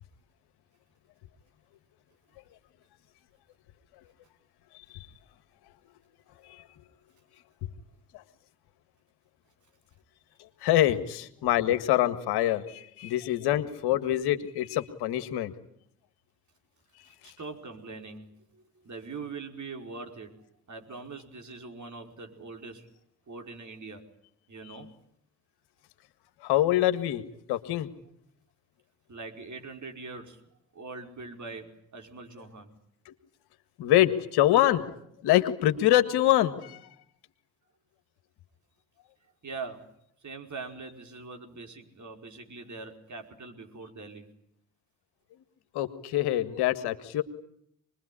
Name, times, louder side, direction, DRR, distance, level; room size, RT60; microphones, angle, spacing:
voice 1, 10.6-15.5 17.2-17.3 26.4-27.2 27.5-27.9 33.1-33.2 33.8-34.9 35.2-36.9 45.7-47.2, left 13 dB, 75° left, 11 dB, 1.8 m, -25 dB
voice 2, 17.0-22.9 23.3-24.0 24.5-24.9 29.1-30.4 30.7-32.7 39.4-39.9 40.2-44.3, right 4 dB, 45° right, 4 dB, 5.0 m, -42 dB
25.0 x 21.5 x 10.0 m, 0.72 s
hypercardioid pair, 45°, 39 cm